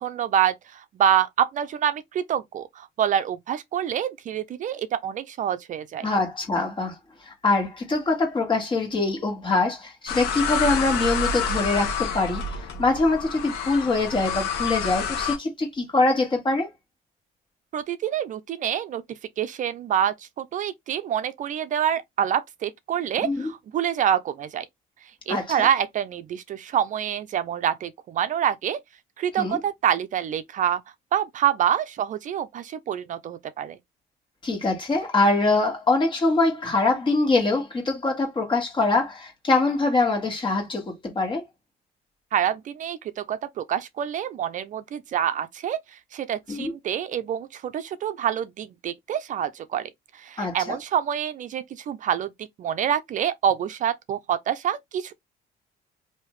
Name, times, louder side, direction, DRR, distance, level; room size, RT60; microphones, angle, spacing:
voice 1, 0.0-6.1 17.7-19.0 19.4-24.6 25.3-28.8 29.2-30.8 31.1-33.8 42.3-52.3 52.6-55.1, right 9 dB, 50° right, 0.4 m, -26 dB
voice 2, 6.0-6.9 7.2-12.4 12.8-16.7 23.2-23.5 25.3-25.7 29.3-29.6 34.4-41.4 46.5-46.7 50.4-50.8, left 3 dB, 30° left, 1.6 m, -23 dB
sound 1, 10.1-15.4, left 6 dB, 90° left, 0.9 m, -28 dB
3.2 x 2.7 x 3.1 m
cardioid pair, 110°, 17 cm